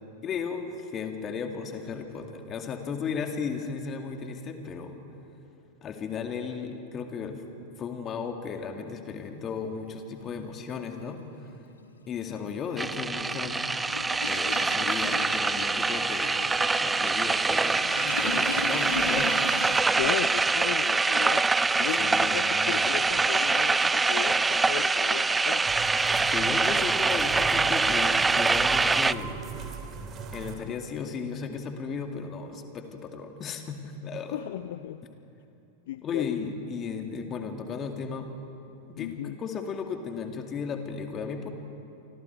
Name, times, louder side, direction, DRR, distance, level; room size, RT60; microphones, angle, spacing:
voice 1, 0.2-5.0 5.8-7.4 7.8-11.6 12.1-13.6 14.3-19.4 21.9-23.0 26.2-29.5 30.3-34.4 36.0-38.3 38.9-41.5, left 6 dB, 25° left, 5 dB, 2.2 m, -35 dB
Toilet flush, 9.3-9.4 10.7-10.9 11.2-19.8, left 4 dB, 75° left, 1.7 m, -38 dB
sound 1, 12.8-29.1, right 3 dB, 10° right, 0.4 m, -24 dB
voice 2, 20.0-21.5 21.7-25.7 34.3-35.0 35.9-36.4 39.0-39.4, left 13 dB, 55° left, 13 dB, 0.5 m, -35 dB
sound 2, 25.7-30.6, right 6 dB, 30° right, 2.4 m, -39 dB
29.0 x 24.5 x 4.6 m, 2.8 s
figure-of-eight pair, 90°, 0 cm